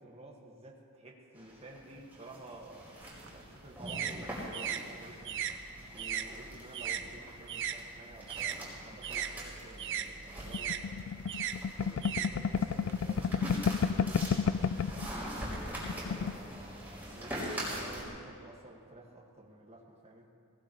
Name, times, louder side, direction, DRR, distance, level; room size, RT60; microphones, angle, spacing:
voice 1, 0.0-5.6 5.9-11.2 11.8-16.5 17.1-20.3, right 1 dB, 30° right, -2 dB, 2.0 m, -52 dB
sound 1, 1.4-18.0, equal, 10° right, 5.1 m, -43 dB
sound 2, 3.0-7.8 8.1-12.9, right 9 dB, 60° right, 0.8 m, -38 dB
sound 3, 10.5-15.1 15.4-15.5 15.8-16.4, left 6 dB, 65° left, 0.4 m, -31 dB
20.5 x 19.0 x 3.3 m, 2.4 s
head